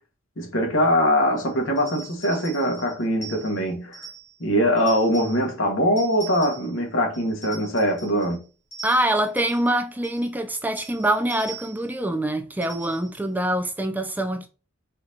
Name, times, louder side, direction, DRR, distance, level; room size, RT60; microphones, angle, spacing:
voice 1, 0.4-4.0 4.4-8.4, equal, 70° left, 1.4 m, -22 dB
sound 1, 1.4-4.4 4.8-5.5 6.0-6.8 7.1-8.4 8.7-9.7 10.0-10.3 10.8-11.9 12.6-13.2, right 5 dB, 55° left, 2.6 m, -42 dB
voice 2, 8.8-14.5, right 1 dB, 10° right, 0.3 m, -25 dB
4.3 x 2.7 x 4.1 m
head